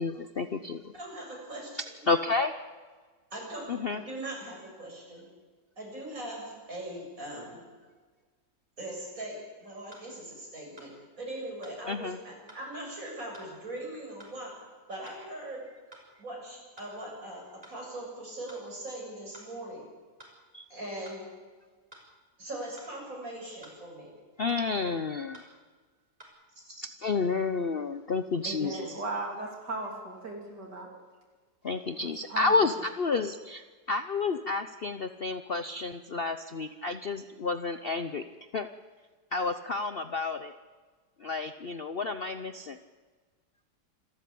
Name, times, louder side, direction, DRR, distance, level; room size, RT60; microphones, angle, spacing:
voice 1, 0.0-0.9 2.1-2.7 3.7-4.0 11.9-12.2 20.5-20.7 24.4-25.5 27.0-29.0 31.6-38.2 38.5-38.7 39.3-40.5 41.2-42.8, left 4 dB, 45° left, 10 dB, 0.8 m, -30 dB
voice 2, 0.9-1.7 3.3-5.3 5.8-7.6 8.8-14.6 14.9-15.7 16.2-19.8 20.7-21.3 22.4-24.1 26.6-26.8 28.4-29.0, right 1 dB, 50° right, -1 dB, 7.5 m, -40 dB
sound 1, 9.9-10.1 10.8-10.9 11.6-11.8 12.5-12.7 13.3-13.5 14.2-14.4 15.0-15.2 15.9-16.1 16.8-16.9 17.6-17.8 18.5-18.7 19.3-19.5 20.2-20.4 21.1-21.2 21.9-22.1 22.8-22.9 23.6-23.8 24.5-24.6 25.3-25.5 26.2-26.3, right 1 dB, 20° right, 5.5 m, -51 dB
voice 3, 28.9-30.9 32.0-32.6, right 2 dB, 75° right, 1 dB, 3.8 m, -37 dB
27.0 x 13.5 x 8.5 m, 1.4 s
omnidirectional pair, 1.8 m